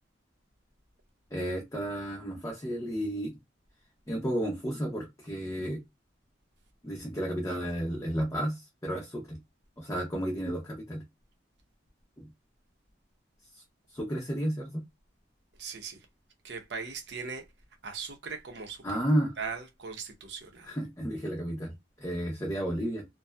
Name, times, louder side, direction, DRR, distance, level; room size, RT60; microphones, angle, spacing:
voice 1, 1.3-3.4 4.1-5.8 6.8-9.4 9.8-11.0 12.2-12.3 13.5-13.6 13.9-14.8 18.8-19.3 20.6-23.0, equal, 15° left, 0.6 m, -32 dB
voice 2, 15.6-16.0 16.4-17.4 17.8-18.8 19.4-20.7, right 5 dB, 65° right, 0.7 m, -39 dB
2.6 x 2.2 x 2.2 m
head